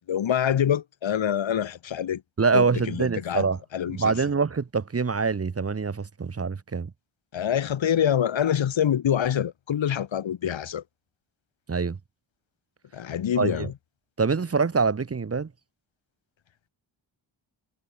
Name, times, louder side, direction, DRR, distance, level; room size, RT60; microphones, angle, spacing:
voice 1, 0.1-2.2 2.5-3.5 3.7-4.1 7.3-10.8 12.9-13.7, left 9 dB, 70° left, 1.7 m, -25 dB
voice 2, 2.4-3.6 3.9-6.9 11.7-12.0 13.4-13.7 14.2-15.5, right 5 dB, 30° right, 1.4 m, -25 dB
wide cardioid pair, 165°, 47 cm